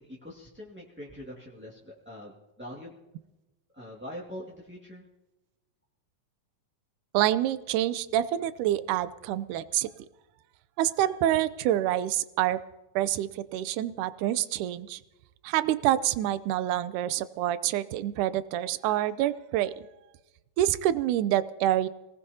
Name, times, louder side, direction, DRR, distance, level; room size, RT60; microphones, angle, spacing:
voice 1, 0.0-2.9 3.7-5.0, equal, 5° right, -6 dB, 1.1 m, -43 dB
voice 2, 7.1-9.9 10.8-12.6 13.0-15.0 15.4-19.7 20.6-21.9, right 13 dB, 80° right, 14 dB, 2.0 m, -27 dB
26.0 x 18.5 x 2.8 m, 1.0 s
omnidirectional pair, 4.0 m